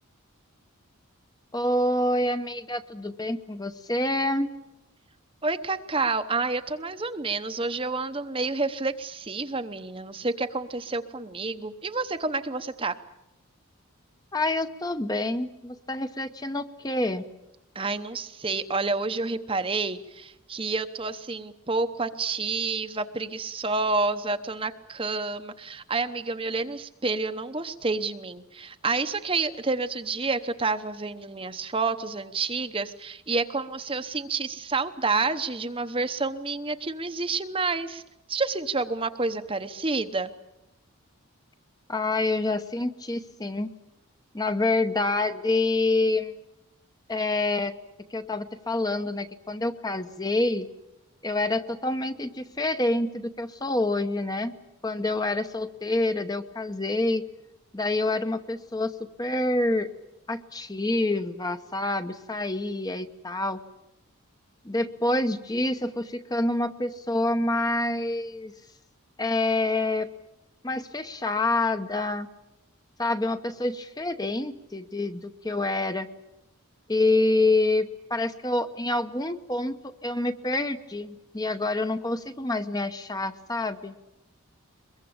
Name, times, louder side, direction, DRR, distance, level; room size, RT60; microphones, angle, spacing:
voice 1, 1.5-4.5 14.3-17.2 41.9-43.7 44.3-46.3 47.1-47.7 48.1-50.7 51.2-54.6 54.8-57.2 57.7-59.9 60.3-63.6 64.6-68.5 69.2-70.1 70.6-72.3 73.0-76.1 76.9-83.9, left 2 dB, 15° left, 8 dB, 0.9 m, -27 dB
voice 2, 5.4-12.9 17.7-38.0 38.3-40.3, right 3 dB, 25° right, 9 dB, 0.9 m, -29 dB
23.0 x 22.0 x 8.8 m, 0.94 s
head